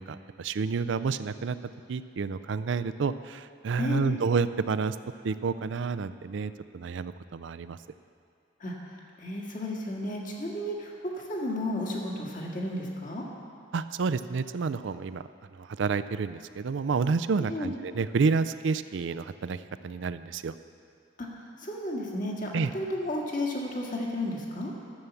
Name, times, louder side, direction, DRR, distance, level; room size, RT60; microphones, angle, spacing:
voice 1, 0.0-1.6 1.9-5.0 5.2-7.8 13.7-20.5 22.5-22.7, right 5 dB, 70° right, 13 dB, 0.4 m, -29 dB
voice 2, 3.8-4.2 8.6-13.2 17.4-17.7 21.2-21.3 21.6-24.7, left 1 dB, 45° left, -2 dB, 1.8 m, -33 dB
13.0 x 7.2 x 7.0 m, 2.4 s
head